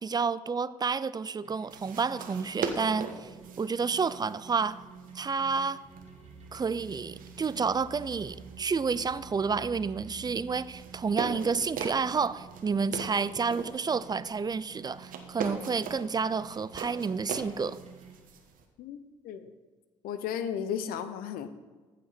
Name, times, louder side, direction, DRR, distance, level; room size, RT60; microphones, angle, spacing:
voice 1, 0.0-3.3 3.6-4.8 5.1-5.8 6.5-17.8, right 5 dB, 25° right, 0.5 m, -30 dB
sound 1, 1.4-18.2, right 6 dB, 40° right, 2.0 m, -51 dB
sound 2, 1.6-18.7, right 6 dB, 60° right, 1.3 m, -42 dB
sound 3, 5.8-13.0, right 3 dB, 35° left, 2.7 m, -52 dB
voice 2, 18.8-19.5 20.0-21.5, left 8 dB, 70° left, 0.7 m, -35 dB
14.5 x 5.3 x 4.1 m
hypercardioid pair, 60°, 16 cm